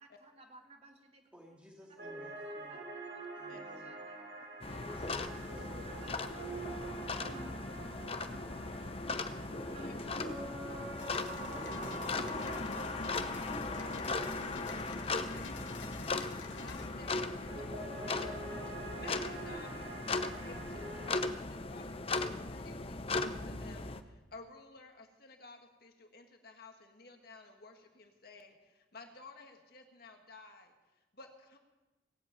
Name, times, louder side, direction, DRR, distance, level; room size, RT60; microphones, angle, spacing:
voice 1, 0.0-1.2 2.4-5.1 5.8-6.6 7.2-8.0 9.1-9.2 9.7-10.4 12.7-13.6 13.9-14.0, right 1 dB, 35° right, 3 dB, 1.8 m, -57 dB
voice 2, 1.3-2.8 3.3-3.9 4.9-6.2 11.8-12.9, equal, 5° right, -2 dB, 3.2 m, -56 dB
sound 1, 2.0-21.2, right 2 dB, 60° right, 5.9 m, -46 dB
sound 2, 4.6-24.0, left 3 dB, 30° left, 0.8 m, -38 dB
voice 3, 9.7-10.8 13.3-14.0 15.2-15.7 16.5-18.4 19.0-20.0 20.4-30.7 31.1-31.6, left 3 dB, 55° left, 4 dB, 1.8 m, -54 dB
sound 3, 11.0-16.9, left 4 dB, 85° left, 1.4 m, -51 dB
18.5 x 8.2 x 8.9 m, 1.1 s
head